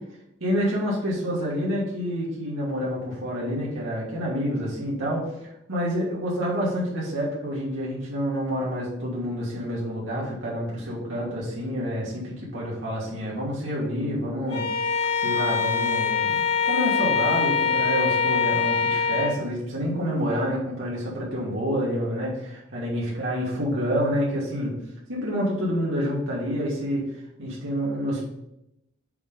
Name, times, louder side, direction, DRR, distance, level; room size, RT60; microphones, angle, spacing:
voice 1, 0.4-14.6 15.2-16.4 16.6-24.7 25.1-28.2, equal, 80° right, -5 dB, 2.6 m, -28 dB
Bowed string instrument, 14.5-19.4, left 6 dB, 70° left, 3.1 m, -24 dB
7.7 x 3.9 x 5.3 m, 0.83 s
head